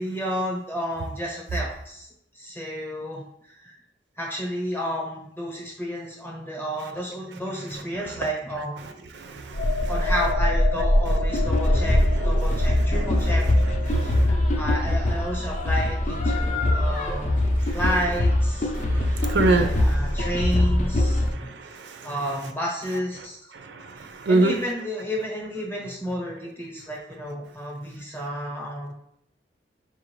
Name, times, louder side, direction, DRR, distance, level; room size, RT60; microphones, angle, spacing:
voice 1, 0.0-2.1 2.3-3.8 4.2-8.9 9.9-13.5 14.0-17.4 17.7-19.2 19.5-21.5 22.0-23.4 24.3-28.9, equal, 10° left, -1 dB, 0.8 m, -31 dB
voice 2, 9.2-9.9 11.8-11.9 12.2-13.3 13.9-14.3 17.6-17.8 18.7-20.0 21.4-22.1 23.5-24.6, right 2 dB, 70° right, 6 dB, 0.4 m, -27 dB
sound 1, 9.5-17.0 17.3-17.5, equal, 85° left, 0.6 m, -25 dB
sound 2, 11.3-21.3, left 1 dB, 45° left, 0.6 m, -23 dB
4.6 x 2.5 x 3.1 m, 0.72 s
head